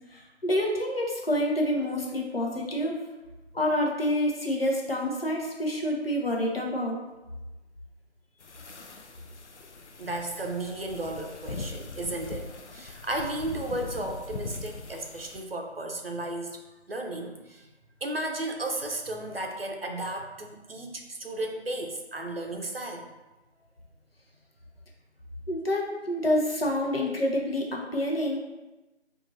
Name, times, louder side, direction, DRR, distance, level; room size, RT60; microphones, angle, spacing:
voice 1, 0.1-3.0 3.5-7.0 25.5-28.4, left 1 dB, 60° left, -1 dB, 0.8 m, -27 dB
sound 1, 8.4-15.4, left 3 dB, 85° left, 0.5 m, -41 dB
voice 2, 10.0-16.6 16.9-17.7 18.0-23.0, right 1 dB, 60° right, 3 dB, 0.6 m, -34 dB
2.6 x 2.5 x 4.1 m, 1.1 s
figure-of-eight pair, 180°, 34 cm